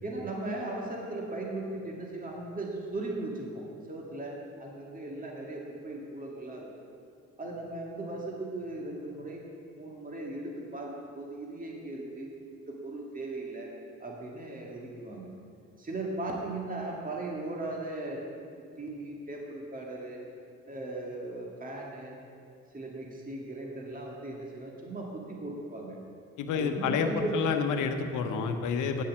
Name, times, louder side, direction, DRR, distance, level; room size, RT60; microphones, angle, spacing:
voice 1, 0.0-6.7 7.4-9.4 9.8-12.3 12.7-13.7 14.0-15.3 15.8-18.2 18.8-20.2 20.7-22.1 22.7-26.0 26.5-27.4, right 2 dB, 25° right, -1 dB, 2.1 m, -37 dB
voice 2, 26.4-29.0, left 6 dB, 90° left, 6 dB, 1.0 m, -29 dB
9.7 x 8.9 x 7.4 m, 2.3 s
cardioid pair, 90°, 30 cm